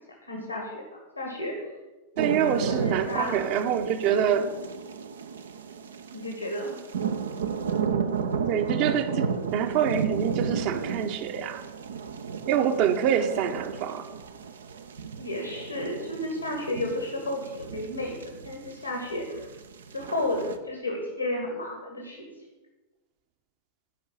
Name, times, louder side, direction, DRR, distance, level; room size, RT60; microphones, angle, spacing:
voice 1, 0.2-1.7 2.2-3.4 6.1-6.8 12.6-12.9 15.2-19.5 19.9-22.3, left 1 dB, 85° left, 0 dB, 2.0 m, -33 dB
voice 2, 2.2-4.6 8.5-11.6 12.5-14.1, right 8 dB, 45° right, 8 dB, 1.0 m, -26 dB
sound 1, 2.2-20.6, right 6 dB, 65° right, 0.7 m, -33 dB
11.5 x 5.5 x 8.4 m, 1.2 s
figure-of-eight pair, 90°, 0 cm